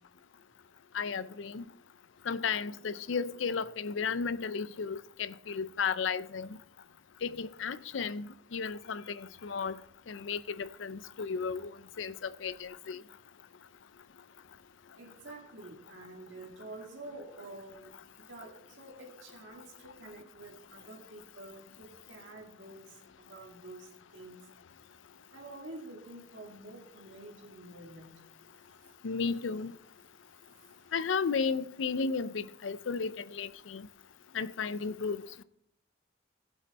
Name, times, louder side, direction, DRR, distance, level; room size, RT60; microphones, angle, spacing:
voice 1, 0.9-1.6 2.3-6.5 7.2-9.8 10.1-11.7 12.0-13.0 29.0-29.7 30.9-33.8 34.3-35.2, left 5 dB, 85° left, 0.5 m, -34 dB
voice 2, 15.0-18.0 18.3-24.4 25.3-28.2, right 2 dB, 80° right, 2.0 m, -48 dB
15.0 x 7.8 x 4.1 m
head